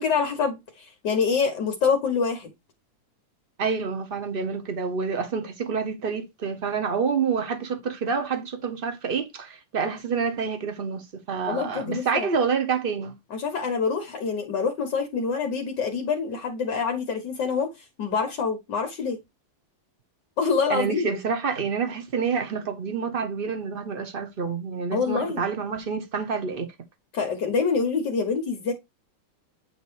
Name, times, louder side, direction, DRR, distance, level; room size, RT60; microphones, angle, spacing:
voice 1, 0.0-2.5 11.5-12.3 13.3-17.7 18.0-19.2 20.4-21.2 24.9-25.4 27.1-28.7, left 5 dB, 55° left, 1.8 m, -26 dB
voice 2, 3.6-13.2 20.7-26.7, right 5 dB, 75° right, 0.5 m, -28 dB
8.7 x 3.1 x 4.6 m
omnidirectional pair, 2.4 m